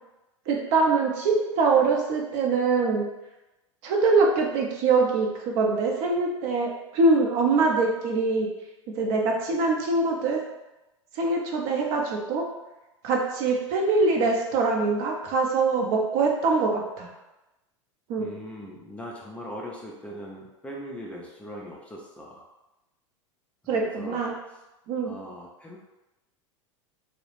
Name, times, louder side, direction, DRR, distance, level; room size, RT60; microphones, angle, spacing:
voice 1, 0.5-3.1 3.8-8.5 9.0-10.4 11.1-12.4 13.0-17.1 18.1-18.3 23.7-24.3 24.9-25.1, right 3 dB, 45° right, 0 dB, 0.5 m, -23 dB
voice 2, 18.2-22.4 23.6-24.2 24.5-24.6 25.0-25.8, equal, 10° left, -3 dB, 0.3 m, -40 dB
2.3 x 2.0 x 3.0 m, 1.0 s
figure-of-eight pair, 85°, 16 cm